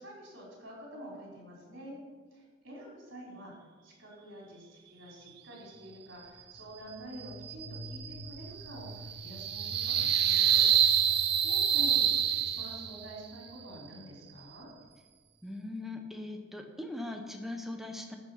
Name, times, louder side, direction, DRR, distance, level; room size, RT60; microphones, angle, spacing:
voice 1, 0.0-2.0 2.3-3.5 3.8-10.6 11.4-14.7, right 1 dB, 75° right, -3 dB, 3.9 m, -48 dB
sound 1, 7.1-13.1, right 9 dB, 55° right, 0.6 m, -28 dB
voice 2, 15.4-18.2, left 2 dB, ahead, 3 dB, 1.0 m, -40 dB
13.5 x 5.6 x 5.7 m, 1.4 s
head